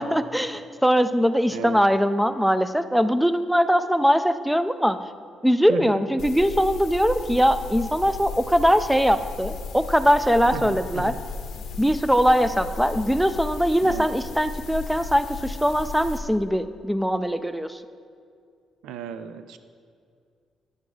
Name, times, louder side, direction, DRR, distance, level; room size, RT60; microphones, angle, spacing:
voice 1, 0.0-5.0 5.4-11.1 11.8-17.8, equal, ahead, 11 dB, 0.4 m, -21 dB
voice 2, 1.5-1.8 5.7-6.1 10.5-11.2 13.8-14.1 18.8-19.6, right 7 dB, 90° right, 11 dB, 0.4 m, -35 dB
sound 1, 6.2-16.2, left 4 dB, 70° left, 0.6 m, -35 dB
9.4 x 6.1 x 3.9 m, 2.3 s
cardioid pair, 90°, 0 cm